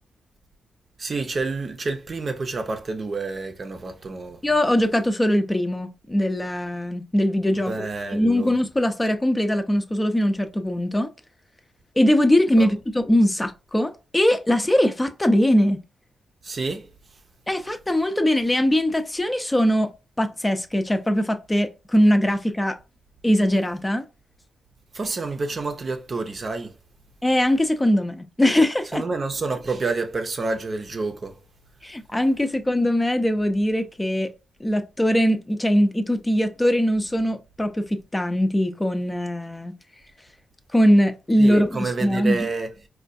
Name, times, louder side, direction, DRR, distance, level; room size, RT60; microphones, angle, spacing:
voice 1, 1.0-4.4 7.5-8.5 12.6-12.7 16.4-16.9 24.9-26.7 28.9-31.4 41.4-42.7, right 3 dB, 50° right, 0.6 m, -28 dB
voice 2, 4.4-7.7 8.1-11.1 12.0-15.8 17.5-19.9 20.2-22.8 23.2-24.0 27.2-29.0 31.8-34.3 34.6-39.7 40.7-42.5, equal, 20° left, 0.5 m, -21 dB
4.3 x 2.3 x 2.6 m
supercardioid pair, 45°, 0 cm